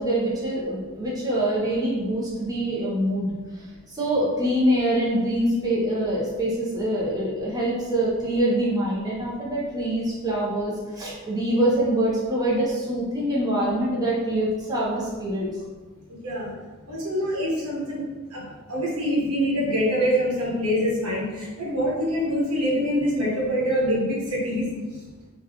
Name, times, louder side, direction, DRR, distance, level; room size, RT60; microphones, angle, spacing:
voice 1, 0.0-3.3 3.9-15.5, right 1 dB, 15° right, -6 dB, 0.6 m, -24 dB
voice 2, 16.9-18.0 18.3-18.4 18.7-24.7, equal, 85° right, -5 dB, 1.2 m, -25 dB
3.6 x 2.3 x 2.8 m, 1.3 s
head